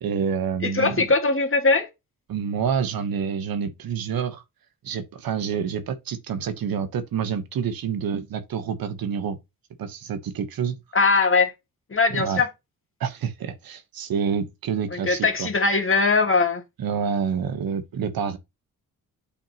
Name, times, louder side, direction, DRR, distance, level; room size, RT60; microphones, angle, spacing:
voice 1, 0.0-1.0 2.3-4.4 4.8-9.4 9.8-10.8 12.2-12.4 13.0-15.5 16.8-18.4, right 7 dB, 70° right, 1.1 m, -28 dB
voice 2, 0.6-1.9 10.9-11.5 11.9-12.5 14.9-16.6, left 4 dB, 35° left, 1.7 m, -20 dB
8.5 x 4.6 x 2.9 m
cardioid pair, 60°, 36 cm